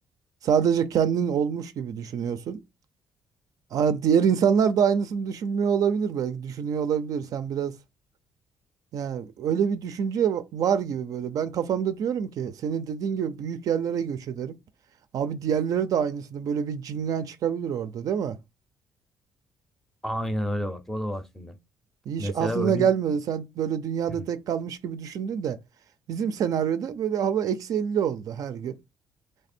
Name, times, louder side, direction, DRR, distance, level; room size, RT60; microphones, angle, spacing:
voice 1, 0.4-2.6 3.7-7.7 8.9-14.5 15.1-18.4 22.1-25.6 26.1-28.7, right 7 dB, 60° right, 0.4 m, -26 dB
voice 2, 20.0-21.5 22.2-22.9 24.1-24.2, equal, 5° left, 0.6 m, -30 dB
3.3 x 3.3 x 4.3 m
cardioid pair, 135°, 7 cm